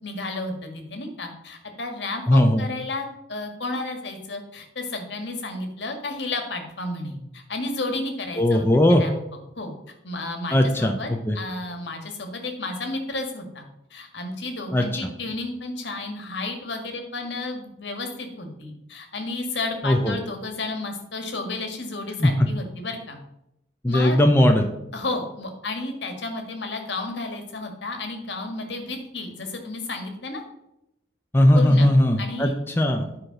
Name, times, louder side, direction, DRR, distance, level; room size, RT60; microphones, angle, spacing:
voice 1, 0.0-8.7 9.0-9.2 9.6-9.7 10.0-11.1 11.3-13.6 13.9-23.2 23.8-24.2 24.9-30.4 31.5-31.9 32.2-32.5, left 2 dB, 70° left, 4 dB, 1.8 m, -32 dB
voice 2, 2.3-2.6 8.4-9.0 10.5-11.4 14.7-15.1 19.8-20.2 22.2-22.5 23.8-24.7 31.3-33.0, left 1 dB, 10° left, 3 dB, 0.6 m, -18 dB
10.5 x 4.9 x 5.9 m, 0.84 s
head